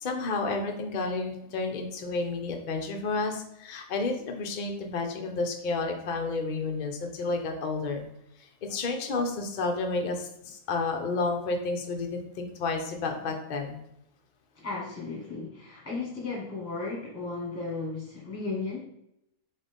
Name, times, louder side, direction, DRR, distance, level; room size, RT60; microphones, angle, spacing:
voice 1, 0.0-8.0 8.6-13.8, left 3 dB, 50° left, 3 dB, 0.5 m, -31 dB
voice 2, 14.5-18.8, left 3 dB, 10° left, -4 dB, 1.3 m, -35 dB
4.0 x 3.6 x 3.5 m, 0.79 s
omnidirectional pair, 1.5 m